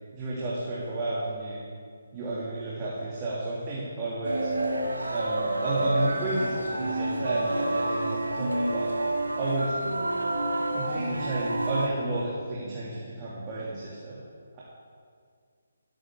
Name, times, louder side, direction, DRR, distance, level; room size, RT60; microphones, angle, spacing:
voice 1, 0.1-1.6 2.1-4.5 5.1-8.9 9.4-9.8 10.7-14.2 14.5-14.6, right 2 dB, 25° right, -7 dB, 2.2 m, -32 dB
sound 1, 4.2-11.9, right 1 dB, 80° right, 1.6 m, -29 dB
16.0 x 8.9 x 3.6 m, 2.1 s
figure-of-eight pair, 145°, 0 cm